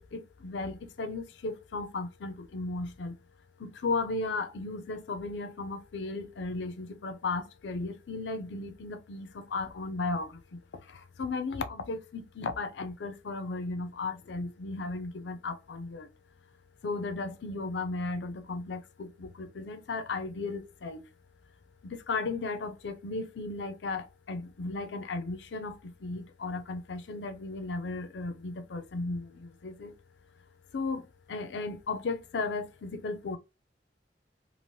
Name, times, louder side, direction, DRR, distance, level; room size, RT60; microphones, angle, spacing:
voice 1, 0.0-3.2 3.6-10.6 11.2-16.1 16.8-21.0 21.8-29.9 30.7-31.0 31.3-33.4, left 3 dB, 75° left, 0.5 m, -35 dB
3.1 x 2.5 x 2.7 m
head